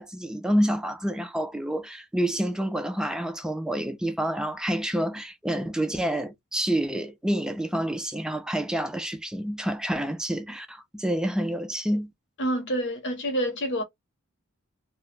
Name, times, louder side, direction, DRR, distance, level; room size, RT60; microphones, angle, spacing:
voice 1, 0.0-12.1, right 1 dB, 5° right, 0.3 m, -28 dB
voice 2, 12.4-13.8, equal, 55° left, 0.8 m, -27 dB
2.2 x 2.1 x 3.1 m
head